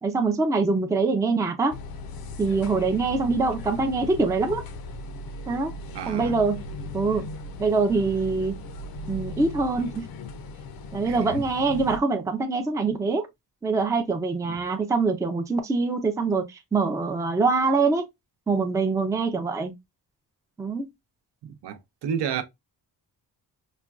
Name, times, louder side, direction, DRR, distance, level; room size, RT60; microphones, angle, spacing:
voice 1, 0.0-1.8 2.4-4.6 5.5-5.7 6.1-6.6 6.9-7.2 7.6-8.6 9.1-10.1 10.9-13.3 13.6-18.1 18.5-19.7 20.6-20.9, right 4 dB, 10° right, 0.3 m, -24 dB
sound 1, 1.7-12.0, left 2 dB, 60° left, 0.5 m, -37 dB
voice 2, 5.9-6.4 11.0-11.4 14.5-14.6 21.4-22.4, right 7 dB, 80° right, 0.7 m, -31 dB
5.0 x 2.2 x 2.3 m
wide cardioid pair, 165°, 40 cm